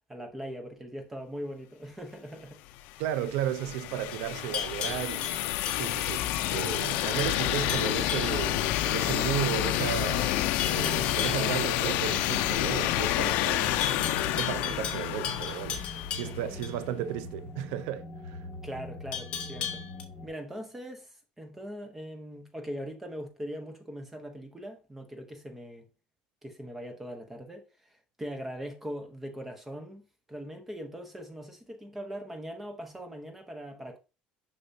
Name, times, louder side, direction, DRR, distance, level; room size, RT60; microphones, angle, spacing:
voice 1, 0.1-2.6 16.1-16.6 18.6-19.8 20.2-25.9 26.4-34.0, equal, 10° right, 1.0 m, -41 dB
sound 1, 2.7-16.5, left 14 dB, 65° left, 0.5 m, -29 dB
voice 2, 3.0-5.4 5.7-10.4 10.7-13.9 14.3-18.4, right 11 dB, 85° right, 0.6 m, -34 dB
Livestock farm animals working animals, 4.1-6.3 6.7-6.9 7.2-8.4 10.6-11.5 13.8-16.8 19.1-20.0, left 7 dB, 40° left, 1.2 m, -36 dB
sound 2, 6.9-20.3, left 1 dB, 10° left, 2.5 m, -43 dB
6.7 x 5.8 x 2.7 m
cardioid pair, 180°, 3 cm